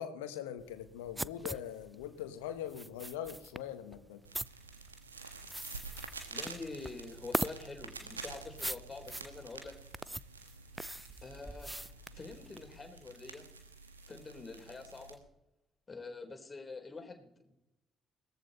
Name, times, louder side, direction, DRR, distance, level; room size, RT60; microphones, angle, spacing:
voice 1, 0.0-4.2, left 10 dB, 75° left, 10 dB, 1.4 m, -42 dB
sound 1, 0.6-12.8, right 1 dB, 10° right, 0.5 m, -41 dB
sound 2, 4.2-15.1, right 4 dB, 85° right, 1.5 m, -49 dB
voice 2, 6.3-9.8 11.2-11.9 12.1-13.5 14.1-15.2 15.9-17.5, left 3 dB, 30° left, 4 dB, 3.8 m, -46 dB
19.0 x 14.0 x 4.2 m, 0.92 s
figure-of-eight pair, 45°, 0 cm